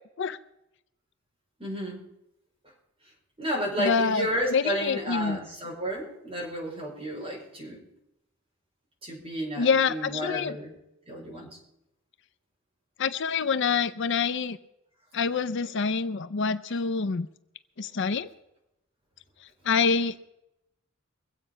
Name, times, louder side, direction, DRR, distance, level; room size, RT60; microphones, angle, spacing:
voice 1, 1.6-2.0 3.4-7.8 9.0-10.8 11.1-11.6, equal, 25° right, -3 dB, 5.2 m, -32 dB
voice 2, 3.8-4.3 4.5-5.4 9.6-10.6 13.0-14.6 15.1-17.3 17.8-18.3 19.6-20.2, left 5 dB, 60° left, 12 dB, 0.5 m, -26 dB
23.0 x 8.3 x 5.5 m, 0.86 s
head